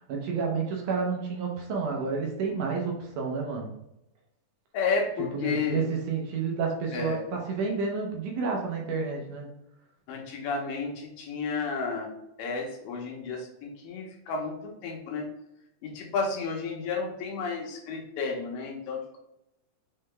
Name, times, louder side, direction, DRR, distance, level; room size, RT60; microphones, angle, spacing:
voice 1, 0.0-3.7 5.3-9.5, right 5 dB, 75° right, 0 dB, 2.2 m, -30 dB
voice 2, 4.7-5.8 6.9-7.2 10.1-12.1 12.4-15.3 15.8-19.2, left 4 dB, 90° left, 0 dB, 2.7 m, -32 dB
6.3 x 3.7 x 2.2 m, 0.87 s
omnidirectional pair, 3.9 m